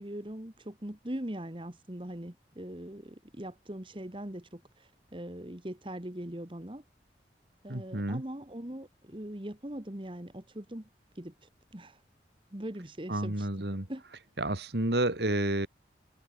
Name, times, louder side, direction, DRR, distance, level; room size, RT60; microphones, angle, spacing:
voice 1, 0.0-6.8 7.6-10.9 11.1-12.0 12.5-13.5 13.9-14.0, right 1 dB, 30° right, 1.6 m, -41 dB
voice 2, 7.7-8.2 13.1-13.9 14.4-15.7, right 1 dB, 70° right, 2.6 m, -30 dB
head